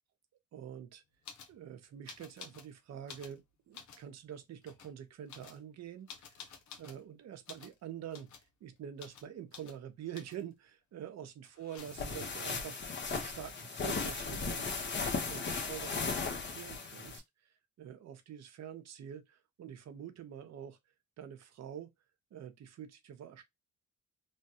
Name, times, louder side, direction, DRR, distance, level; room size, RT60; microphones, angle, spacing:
voice 1, 0.5-1.0 1.5-6.4 6.8-8.3 8.6-15.0 15.3-20.8 21.2-21.9 22.3-23.4, right 9 dB, 60° right, 0.8 m, -46 dB
sound 1, 1.2-1.6 2.1-2.7 3.0-4.1 4.6-4.9 5.3-7.0 7.5-7.8 8.1-8.5 9.0-9.3 9.5-9.8 10.1-10.5 11.4-12.2 14.0-14.1 14.3-14.9, left 6 dB, 70° left, 0.8 m, -52 dB
sound 2, 11.8-17.2, left 4 dB, 35° left, 0.9 m, -36 dB
3.1 x 2.2 x 2.8 m
cardioid pair, 90°, 30 cm